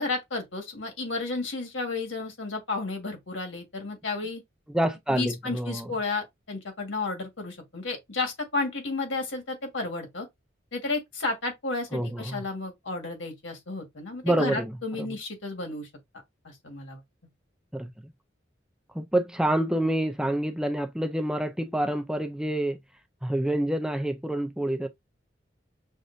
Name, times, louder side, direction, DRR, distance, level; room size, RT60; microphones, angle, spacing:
voice 1, 0.0-4.4 5.1-10.3 10.7-15.9 16.6-17.0, left 3 dB, 85° left, 1.7 m, -32 dB
voice 2, 4.7-5.9 11.9-12.4 14.2-14.7 15.0-15.1 17.7-17.9 18.9-22.8 23.2-24.9, right 1 dB, 5° right, 0.4 m, -27 dB
6.3 x 2.5 x 2.6 m
head